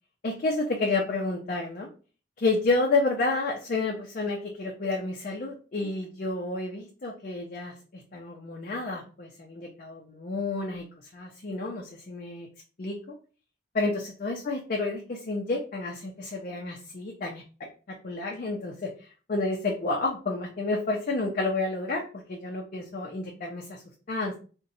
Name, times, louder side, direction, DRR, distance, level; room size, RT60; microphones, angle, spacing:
voice 1, 0.2-1.9 2.4-12.5 12.8-13.0 13.7-17.4 17.9-23.8 24.1-24.4, left 3 dB, 50° left, 0 dB, 0.5 m, -30 dB
2.6 x 2.2 x 4.0 m, 0.37 s
head